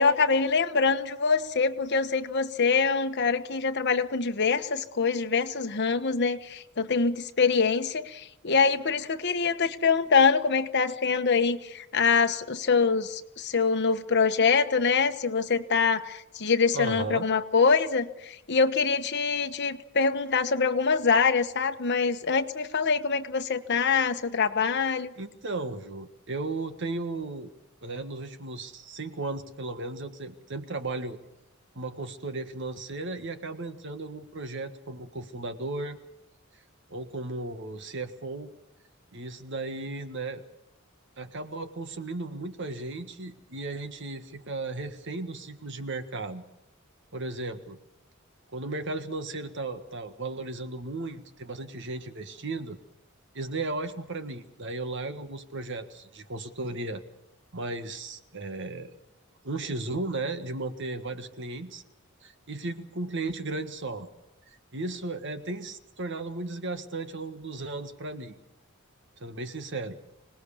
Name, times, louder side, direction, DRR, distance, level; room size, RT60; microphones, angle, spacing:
voice 1, 0.0-25.1, left 5 dB, 55° left, 8 dB, 1.2 m, -24 dB
voice 2, 16.7-17.3 25.2-27.5 27.8-31.2 31.7-36.0 36.9-38.5 39.1-40.4 41.2-46.4 47.1-47.8 48.5-52.8 53.3-57.0 57.5-58.9 59.4-61.8 62.2-64.1 64.7-68.3 69.2-70.0, right 2 dB, 60° right, 9 dB, 1.6 m, -35 dB
25.5 x 19.0 x 7.1 m, 0.85 s
head